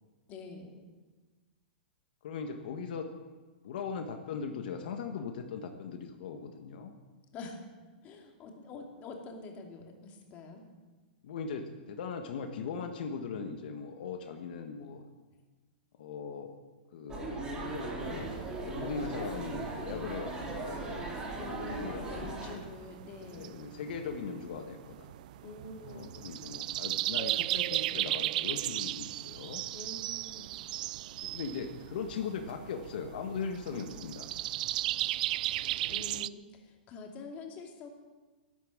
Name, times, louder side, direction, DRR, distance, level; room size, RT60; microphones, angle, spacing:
voice 1, 0.3-0.8 7.3-7.6 8.0-10.6 21.3-23.7 25.4-26.2 29.7-30.5 33.7-34.0 35.9-37.9, left 3 dB, 30° left, 2 dB, 2.4 m, -46 dB
voice 2, 2.2-3.1 3.6-6.9 11.2-15.0 16.0-16.5 16.9-17.4 18.0-21.1 21.6-22.6 23.2-25.1 25.8-29.6 31.1-34.3, left 5 dB, 60° left, 5 dB, 1.5 m, -39 dB
sound 1, 17.1-22.5, right 2 dB, 15° right, 3.3 m, -38 dB
sound 2, 18.0-36.3, right 15 dB, 50° right, 0.4 m, -37 dB
12.0 x 11.5 x 7.5 m, 1.3 s
hypercardioid pair, 150°, 5 cm